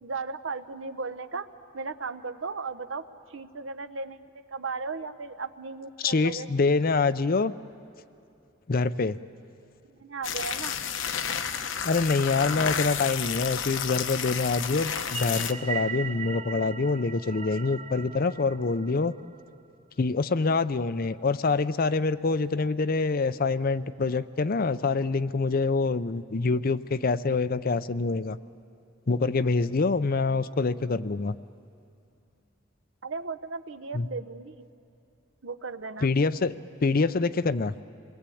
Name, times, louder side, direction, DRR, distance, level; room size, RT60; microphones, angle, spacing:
voice 1, 0.0-1.5 1.7-3.0 3.3-4.2 4.5-6.5 10.0-10.8 33.0-34.7 35.4-36.1, right 4 dB, 75° right, 11 dB, 1.0 m, -36 dB
voice 2, 6.0-7.5 8.7-9.2 11.8-19.1 20.0-28.4 29.1-31.4 33.9-34.1 36.0-36.6 36.8-37.7, left 4 dB, 45° left, 14 dB, 0.5 m, -25 dB
sound 1, 10.2-15.5, left 7 dB, 70° left, 1.0 m, -31 dB
sound 2, 15.0-19.5, right 7 dB, 30° right, 0.7 m, -38 dB
28.5 x 21.0 x 8.5 m, 2.6 s
head